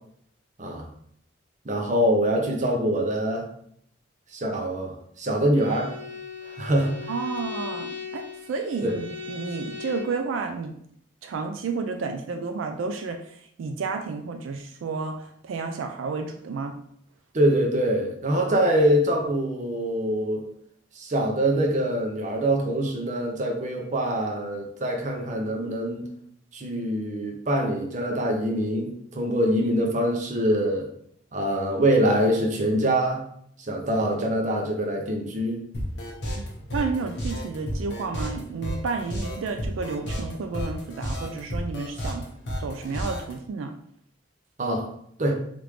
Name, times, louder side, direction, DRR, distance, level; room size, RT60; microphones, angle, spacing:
voice 1, 1.6-3.4 4.3-5.9 6.4-7.1 8.8-9.0 17.3-20.5 20.9-26.1 26.5-30.9 31.3-33.2 33.7-35.6 44.6-44.9 45.2-45.3, right 1 dB, 40° right, 2 dB, 0.6 m, -24 dB
Bowed string instrument, 5.5-10.2, left 5 dB, 25° right, 1.2 m, -38 dB
voice 2, 7.1-10.8 11.2-13.3 13.6-16.7 36.7-42.3 42.6-43.7, right 4 dB, 80° right, 6 dB, 0.3 m, -31 dB
sound 1, 35.7-43.3, equal, 60° left, 0.8 m, -32 dB
3.3 x 2.5 x 3.1 m, 0.68 s
head